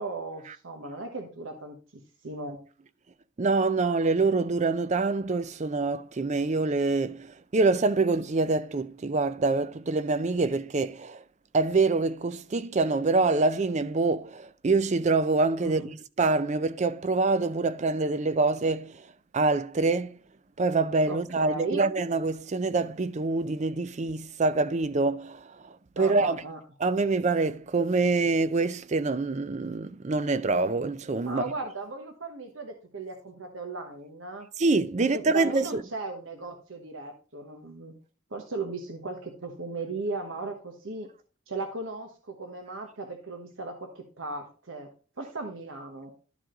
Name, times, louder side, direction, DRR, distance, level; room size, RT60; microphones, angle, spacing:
voice 1, 0.0-1.8 2.2-2.6 15.6-15.9 21.1-21.8 26.0-26.6 31.2-34.5 35.1-38.0 38.3-41.1 41.5-44.9 45.2-46.1, right 3 dB, 70° right, 1.2 m, -37 dB
voice 2, 3.4-11.2 11.5-15.8 16.2-18.9 19.3-20.2 20.6-25.4 26.0-26.4 26.8-31.5 34.6-35.8, right 3 dB, 35° right, 0.4 m, -25 dB
12.0 x 4.9 x 3.8 m
head